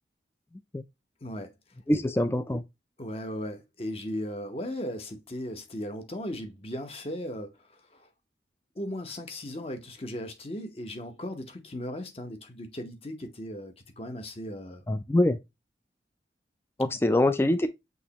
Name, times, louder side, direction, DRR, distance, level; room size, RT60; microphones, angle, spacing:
voice 1, 1.2-1.5 3.0-8.1 8.8-14.8, left 1 dB, 35° left, 0.8 m, -37 dB
voice 2, 1.9-2.6 14.9-15.4 16.8-17.7, left 1 dB, 15° left, 0.3 m, -24 dB
6.4 x 3.0 x 2.8 m
head